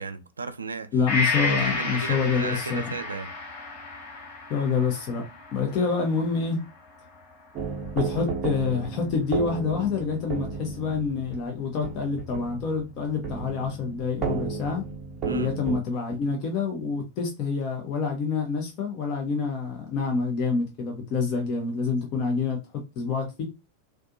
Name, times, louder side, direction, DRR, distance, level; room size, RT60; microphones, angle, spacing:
voice 1, 0.0-0.9 1.6-3.3 15.2-15.5, right 3 dB, 75° right, 0.3 m, -34 dB
voice 2, 0.9-2.9 4.5-5.2 5.5-6.6 7.9-14.8 15.3-22.6 23.0-23.4, left 5 dB, 40° left, 0.7 m, -27 dB
Gong, 1.1-8.7 9.1-9.2, left 3 dB, 55° left, 1.1 m, -33 dB
sound 1, 7.5-15.8, right 5 dB, 35° right, 0.7 m, -34 dB
2.5 x 2.3 x 2.6 m
figure-of-eight pair, 90°, 0 cm